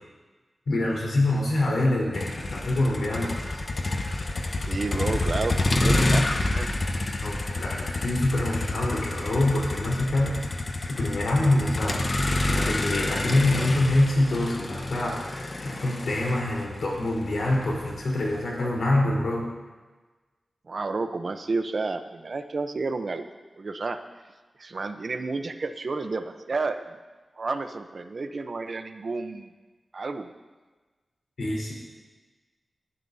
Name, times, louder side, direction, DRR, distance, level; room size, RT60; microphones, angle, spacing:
voice 1, 0.7-3.3 7.2-10.5 10.9-12.0 12.5-15.2 15.6-19.5 31.4-31.7, left 1 dB, 80° left, -4 dB, 3.9 m, -25 dB
Motor vehicle (road), 2.1-18.3, left 2 dB, 40° left, 1.0 m, -28 dB
voice 2, 4.6-6.7 20.7-23.3 23.6-24.0 24.6-27.0 27.4-29.5 29.9-30.3, right 3 dB, 50° right, 8 dB, 0.7 m, -31 dB
19.5 x 12.0 x 2.7 m, 1.3 s
wide cardioid pair, 110°, 0 cm